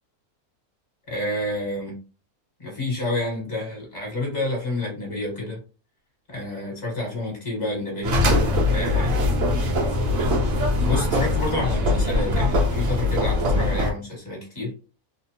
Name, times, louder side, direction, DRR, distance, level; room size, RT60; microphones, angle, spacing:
voice 1, 1.1-2.0 2.6-5.6 6.3-8.2 8.7-9.1 10.8-14.7, left 2 dB, 30° left, -2 dB, 1.3 m, -29 dB
sound 1, 8.0-13.9, left 2 dB, 65° right, 1.1 m, -22 dB
3.1 x 2.0 x 2.8 m, 0.34 s
omnidirectional pair, 1.6 m